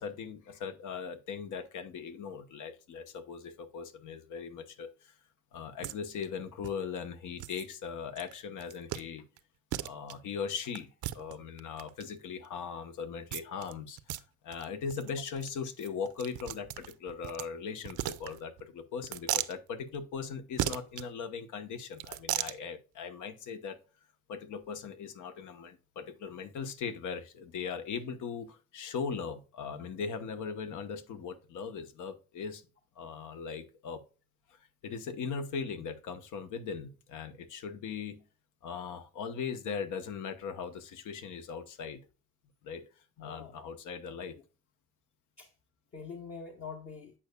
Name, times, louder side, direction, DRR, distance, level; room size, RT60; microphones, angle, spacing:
voice 1, 0.0-5.1 5.5-9.2 9.8-10.9 11.1-23.8 24.3-32.6 33.0-34.0 34.5-38.2 38.6-42.0 42.6-42.8 43.2-44.4, left 6 dB, 80° left, 1.1 m, -39 dB
sound 1, 5.8-6.0 6.2-6.3 6.6-6.7 7.4-7.7 8.2-8.3 8.6-9.0 9.4-9.5 9.7-10.1 10.8-12.0 13.3-13.7 14.0-14.2 14.5-14.6 14.9-15.1 15.4-15.5 15.8-17.5 17.8-18.6 19.0-19.6 20.6-21.1 21.9-22.6, right 14 dB, 75° right, 0.6 m, -36 dB
voice 2, 43.2-43.7 44.3-44.4 45.4-45.5 45.9-47.1, left 5 dB, 45° left, 1.1 m, -45 dB
8.6 x 5.5 x 2.3 m
cardioid pair, 90°, 30 cm